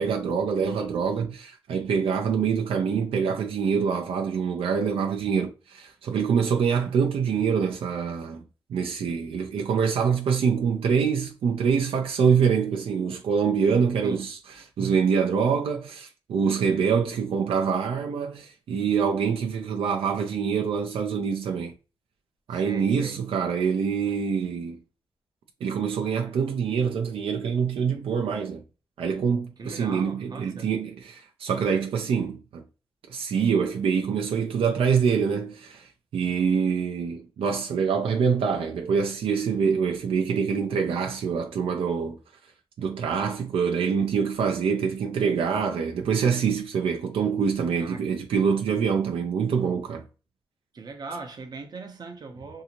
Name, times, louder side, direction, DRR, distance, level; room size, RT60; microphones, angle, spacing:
voice 1, 0.0-8.4 8.7-14.4 14.8-21.7 22.5-24.8 25.6-28.6 29.0-32.6 33.1-35.9 36.1-42.2 42.8-50.0, right 6 dB, 85° right, 0.5 m, -25 dB
voice 2, 22.5-23.2 29.6-30.7 47.8-48.0 50.7-52.6, right 3 dB, 45° right, 0.7 m, -39 dB
2.7 x 2.5 x 2.8 m
cardioid pair, 100°, 9 cm